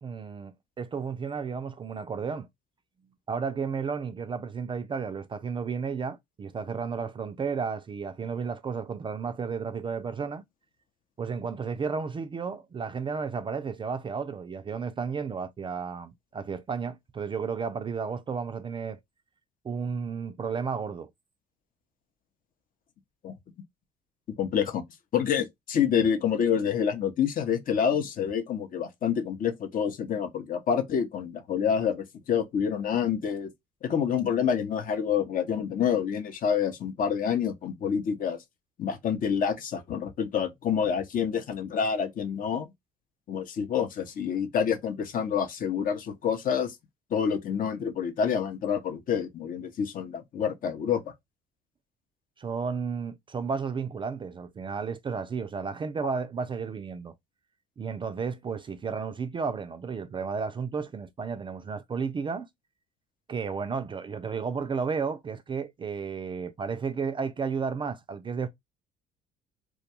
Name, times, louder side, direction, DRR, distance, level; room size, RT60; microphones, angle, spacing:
voice 1, 0.0-2.5 3.3-10.4 11.2-19.0 19.6-21.1 52.4-57.1 57.8-62.5 63.3-68.5, right 5 dB, 25° right, 0.3 m, -33 dB
voice 2, 24.4-24.8 25.1-33.5 33.8-38.4 38.8-42.7 43.3-46.7 47.1-51.0, left 7 dB, 45° left, 0.6 m, -27 dB
2.3 x 2.1 x 2.8 m
hypercardioid pair, 60°, 19 cm